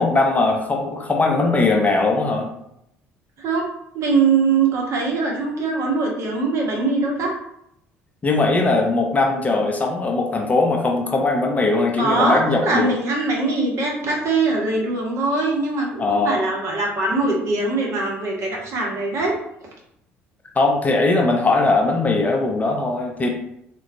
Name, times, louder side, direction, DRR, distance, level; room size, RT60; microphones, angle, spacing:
voice 1, 0.0-2.5 8.2-12.9 16.0-16.4 20.6-23.3, left 3 dB, 25° left, 2 dB, 0.5 m, -20 dB
voice 2, 3.9-7.4 12.0-19.3, right 3 dB, 45° right, -2 dB, 1.0 m, -22 dB
3.6 x 2.2 x 2.6 m, 0.76 s
figure-of-eight pair, 55°, 7 cm